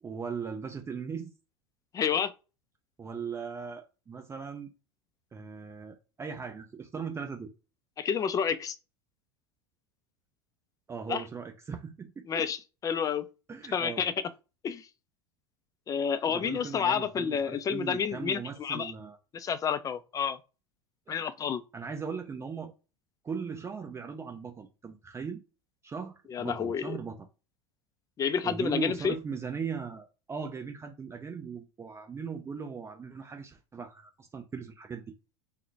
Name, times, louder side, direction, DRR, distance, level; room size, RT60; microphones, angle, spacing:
voice 1, 0.0-1.3 3.0-4.7 5.3-7.5 10.9-12.5 13.5-14.1 16.3-19.2 21.1-21.2 21.7-22.7 23.2-25.4 25.8-27.2 28.4-35.1, right 6 dB, 20° right, 0.6 m, -38 dB
voice 2, 1.9-2.3 8.0-8.8 11.1-11.2 12.3-12.6 12.8-13.3 13.7-14.1 14.6-14.9 15.9-18.9 19.3-20.4 21.1-21.6 26.3-27.0 28.2-29.1, left 7 dB, 25° left, 0.4 m, -29 dB
3.7 x 2.2 x 3.3 m
hypercardioid pair, 85°, 13 cm